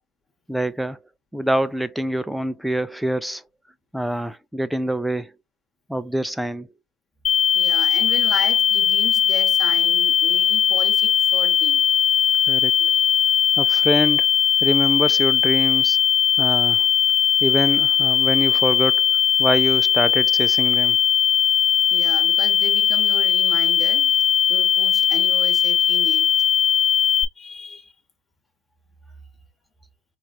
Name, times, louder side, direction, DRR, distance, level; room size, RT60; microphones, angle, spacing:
voice 1, 0.5-1.0 1.3-3.4 3.9-5.3 5.9-6.7 12.5-12.7 13.6-14.3 14.6-16.0 16.4-16.9 17.4-19.0 19.4-21.0, equal, ahead, 0.5 m, -25 dB
sound 1, 7.2-27.2, left 9 dB, 45° left, 0.8 m, -19 dB
voice 2, 7.5-11.9 12.8-13.3 21.9-24.2 24.5-26.4 27.3-27.9, left 3 dB, 15° left, 1.3 m, -35 dB
4.3 x 2.5 x 4.1 m
supercardioid pair, 110°, 0 cm